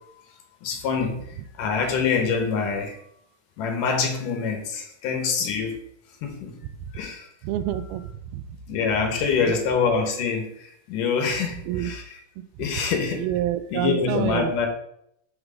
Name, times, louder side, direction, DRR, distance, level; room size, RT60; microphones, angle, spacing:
voice 1, 0.6-3.0 3.6-5.8 6.2-6.6 6.9-7.3 8.7-12.2 12.6-13.3 13.7-14.7, left 5 dB, 70° left, 4 dB, 2.5 m, -25 dB
voice 2, 7.4-8.0 8.3-8.4 9.4-9.7 11.7-11.9 13.2-14.5, right 12 dB, 90° right, 11 dB, 2.5 m, -27 dB
6.3 x 6.3 x 4.9 m, 0.72 s
omnidirectional pair, 4.3 m